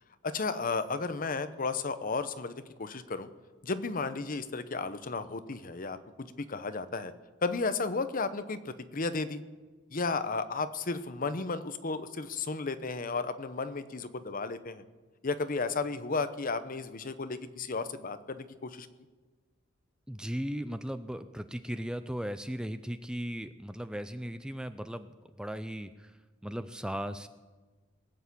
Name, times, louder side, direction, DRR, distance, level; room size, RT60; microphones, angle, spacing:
voice 1, 0.2-3.3 3.6-7.1 7.4-9.4 9.9-14.8 15.2-18.9, left 4 dB, 45° left, 11 dB, 0.8 m, -33 dB
voice 2, 20.1-25.1 25.4-26.1 26.4-27.3, equal, 5° right, 11 dB, 0.5 m, -37 dB
20.0 x 8.2 x 8.4 m, 1.3 s
head